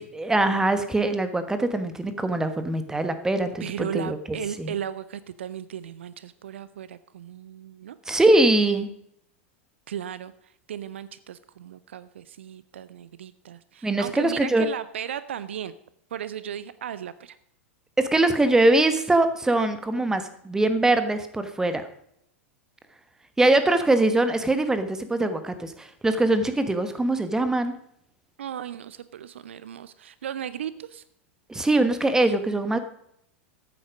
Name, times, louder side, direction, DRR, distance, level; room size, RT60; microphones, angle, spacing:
voice 1, 0.0-4.7 8.1-8.9 13.8-14.7 18.0-21.9 23.4-27.8 31.5-32.8, right 2 dB, 10° right, 10 dB, 1.2 m, -22 dB
voice 2, 3.6-8.0 9.9-10.3 10.7-15.7 16.1-17.4 28.4-31.0, right 9 dB, 65° right, 16 dB, 0.5 m, -36 dB
13.5 x 8.6 x 5.1 m, 0.73 s
figure-of-eight pair, 90°, 7 cm